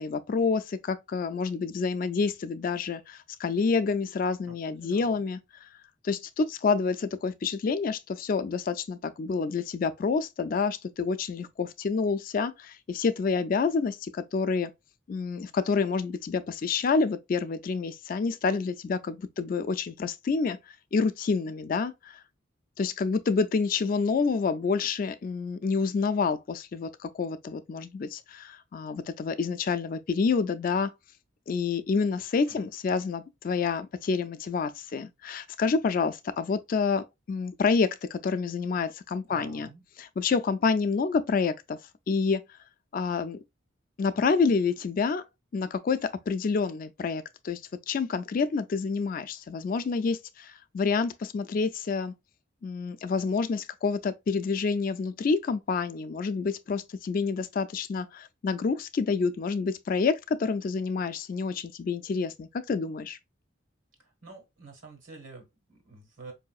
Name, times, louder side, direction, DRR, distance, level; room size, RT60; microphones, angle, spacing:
voice 1, 0.0-5.7 6.0-14.7 15.1-20.6 20.9-22.2 22.8-30.9 31.5-39.7 40.0-41.8 42.1-42.4 42.9-43.4 44.0-45.2 45.5-47.6 47.9-52.1 52.6-63.2, left 4 dB, 45° left, 0.3 m, -28 dB
voice 2, 4.5-5.2 32.5-32.6 39.3-39.8 64.0-66.3, right 3 dB, 75° right, 1.5 m, -48 dB
4.7 x 2.7 x 2.3 m
head